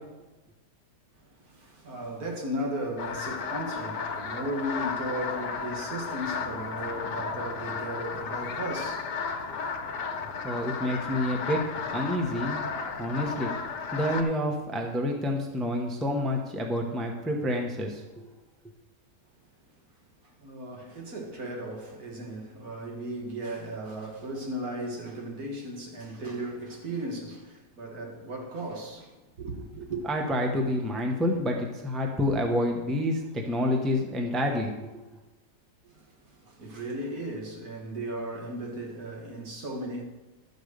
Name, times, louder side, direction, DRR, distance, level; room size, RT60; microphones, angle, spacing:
voice 1, 1.2-9.2 10.1-10.4 20.2-30.0 35.8-40.0, right 1 dB, 60° right, 2.1 m, -36 dB
sound 1, 3.0-14.2, left 5 dB, 85° left, 1.6 m, -34 dB
voice 2, 10.4-11.6 11.9-12.6 13.0-13.5 13.9-18.3 30.1-35.0, left 1 dB, ahead, 0.8 m, -28 dB
12.0 x 5.3 x 6.6 m
omnidirectional pair, 1.8 m